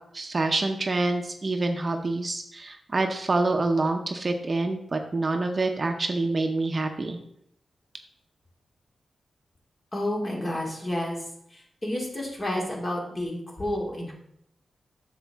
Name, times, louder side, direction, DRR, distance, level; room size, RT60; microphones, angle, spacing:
voice 1, 0.1-7.2, right 2 dB, 40° right, 5 dB, 0.7 m, -26 dB
voice 2, 9.9-11.2 11.5-14.1, left 1 dB, 30° left, -2 dB, 2.4 m, -30 dB
8.1 x 6.5 x 3.5 m, 0.74 s
cardioid pair, 85°, 0 cm